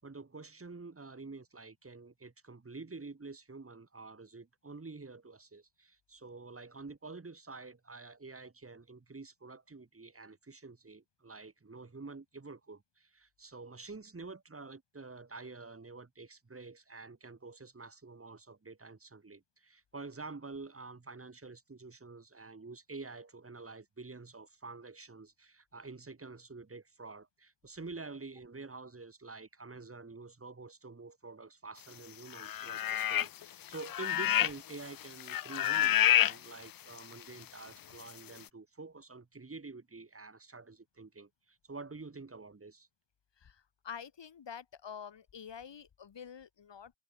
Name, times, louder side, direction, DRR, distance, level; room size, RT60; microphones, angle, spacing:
voice 1, 0.0-42.9, right 3 dB, 30° right, 5.5 m, -48 dB
sound 1, 32.3-33.4 33.7-34.7 35.0-36.3 37.0-37.1, left 11 dB, 55° left, 0.5 m, -28 dB
voice 2, 43.4-46.9, left 7 dB, 85° left, 6.1 m, -47 dB
wide cardioid pair, 125°, 42 cm